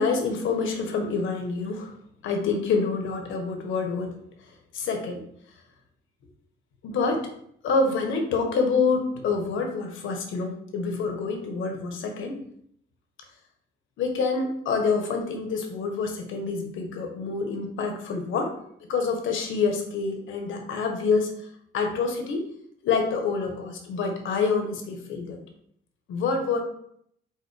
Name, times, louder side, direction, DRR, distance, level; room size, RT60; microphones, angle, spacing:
voice 1, 0.0-1.9 2.2-4.2 4.7-5.2 6.8-7.3 7.6-12.4 14.0-18.5 18.9-21.3 21.7-22.5 22.8-25.4 26.1-26.6, left 4 dB, 80° left, 3 dB, 1.4 m, -27 dB
5.0 x 3.8 x 5.1 m, 0.69 s
cardioid pair, 90°, 20 cm